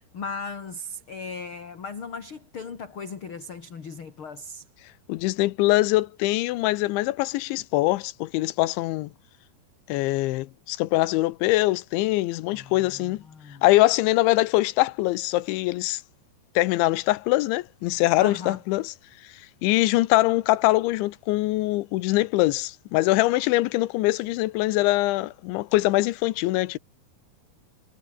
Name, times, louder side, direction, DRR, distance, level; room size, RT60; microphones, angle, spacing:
voice 1, 0.1-4.6 12.5-13.6 18.2-18.6, left 4 dB, 35° left, 2.4 m, -37 dB
voice 2, 5.1-9.1 9.9-13.2 13.6-16.0 16.6-18.9 19.6-26.8, left 18 dB, 80° left, 3.2 m, -23 dB
omnidirectional pair, 5.3 m